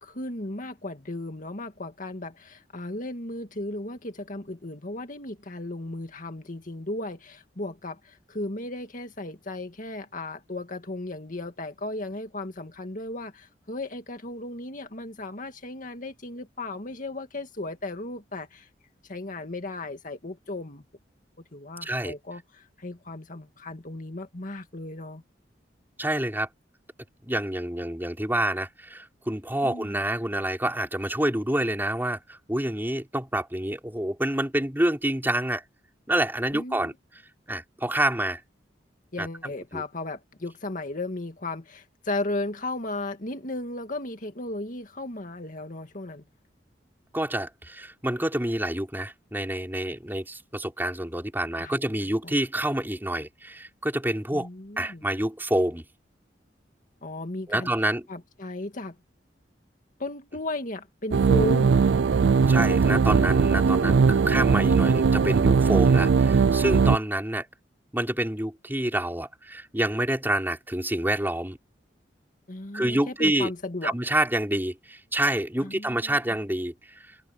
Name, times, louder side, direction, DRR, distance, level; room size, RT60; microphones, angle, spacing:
voice 1, 0.0-18.7 19.1-20.8 21.5-25.2 29.6-29.9 36.5-36.9 39.1-46.2 51.6-51.8 52.2-52.3 54.3-55.1 57.0-57.7 58.1-59.0 60.0-61.8 72.5-73.9 75.6-76.1, left 2 dB, 50° left, 2.0 m, -35 dB
voice 2, 21.8-22.1 26.0-26.5 27.2-35.6 36.1-36.9 37.5-38.4 39.2-39.3 39.7-39.8 47.1-54.5 54.8-55.8 57.5-58.1 62.5-67.5 67.9-71.6 72.7-73.5 73.8-77.0, right 1 dB, 10° right, 4.0 m, -27 dB
sound 1, 61.1-67.0, right 5 dB, 80° right, 0.4 m, -20 dB
head